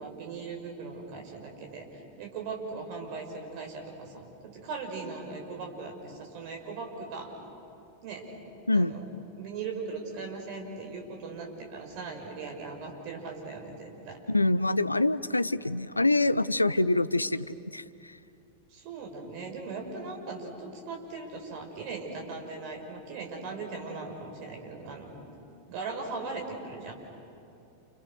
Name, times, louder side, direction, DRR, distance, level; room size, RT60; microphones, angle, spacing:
voice 1, 0.0-7.3 8.0-8.3 8.7-9.0 9.4-14.2 18.7-25.1 25.7-26.9, right 4 dB, 45° right, 2 dB, 5.7 m, -39 dB
voice 2, 14.3-17.4 17.7-17.8, left 2 dB, 85° left, 17 dB, 0.6 m, -25 dB
29.5 x 29.0 x 6.6 m, 2.7 s
figure-of-eight pair, 90°, 0 cm